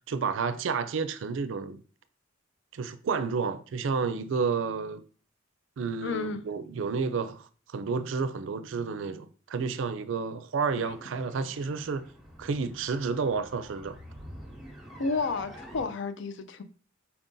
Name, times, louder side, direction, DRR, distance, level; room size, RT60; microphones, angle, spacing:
voice 1, 0.1-1.8 2.7-5.0 5.8-7.5 7.7-12.1 12.4-14.0, right 5 dB, 70° right, 0.4 m, -30 dB
voice 2, 6.0-6.4 15.0-16.6, left 4 dB, 65° left, 0.5 m, -31 dB
sound 1, 10.8-15.8, equal, ahead, 0.9 m, -48 dB
4.6 x 2.6 x 3.7 m
head